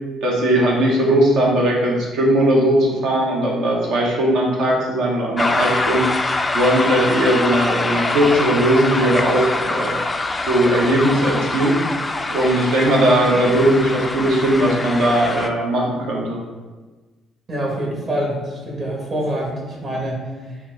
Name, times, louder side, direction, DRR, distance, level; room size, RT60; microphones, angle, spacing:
voice 1, 0.2-9.9 10.5-11.8 12.3-16.4, right 1 dB, 70° right, -2 dB, 0.9 m, -18 dB
sound 1, 5.4-15.5, left 2 dB, 25° left, 0.3 m, -24 dB
voice 2, 17.5-20.6, right 1 dB, 45° right, -2 dB, 1.2 m, -26 dB
4.4 x 2.1 x 3.8 m, 1.3 s
hypercardioid pair, 55°, 0 cm